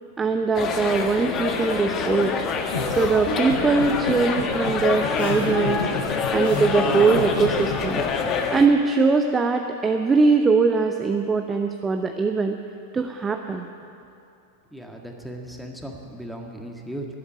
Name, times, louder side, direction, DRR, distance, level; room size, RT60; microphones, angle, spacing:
voice 1, 0.2-2.3 2.9-5.9 6.3-8.0 8.5-12.6 12.9-13.7, right 4 dB, 15° right, 5 dB, 0.7 m, -21 dB
sound 1, 0.5-8.7, left 5 dB, 30° left, 1.4 m, -26 dB
sound 2, 2.7-8.0, left 4 dB, 55° left, 3.8 m, -30 dB
voice 2, 14.7-17.1, right 1 dB, ahead, 1 dB, 1.8 m, -37 dB
12.5 x 11.5 x 8.6 m, 2.7 s
figure-of-eight pair, 90°, 0 cm